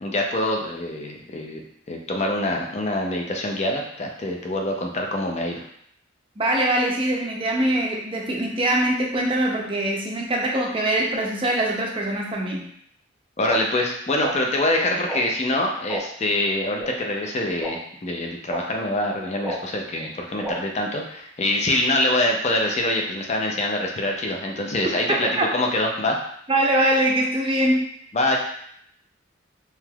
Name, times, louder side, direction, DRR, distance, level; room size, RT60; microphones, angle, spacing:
voice 1, 0.0-5.6 13.4-26.2 28.1-28.4, left 1 dB, 35° left, 1 dB, 0.4 m, -25 dB
voice 2, 6.4-12.6 25.1-25.5 26.5-27.9, right 1 dB, 25° right, -1 dB, 0.5 m, -23 dB
sound 1, 13.5-13.6 14.2-14.3 15.1-15.2 15.9-16.0 16.8-16.9 17.6-17.7 18.5-18.6 19.4-19.6 20.4-20.5, right 1 dB, ahead, 0.8 m, -29 dB
3.3 x 2.9 x 2.3 m, 0.69 s
head